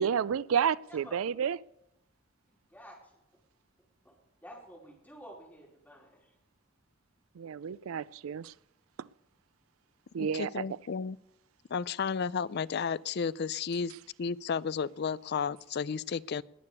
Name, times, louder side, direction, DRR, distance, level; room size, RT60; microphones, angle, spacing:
voice 1, 0.0-1.6 7.4-8.5 9.0-9.1 10.1-10.6, right 7 dB, 90° right, 21 dB, 0.4 m, -30 dB
voice 2, 4.4-6.3, equal, 10° left, -2 dB, 4.6 m, -50 dB
voice 3, 10.2-11.2 11.7-13.9 14.2-16.4, left 6 dB, 55° left, 19 dB, 0.4 m, -33 dB
19.5 x 6.9 x 6.8 m, 0.88 s
head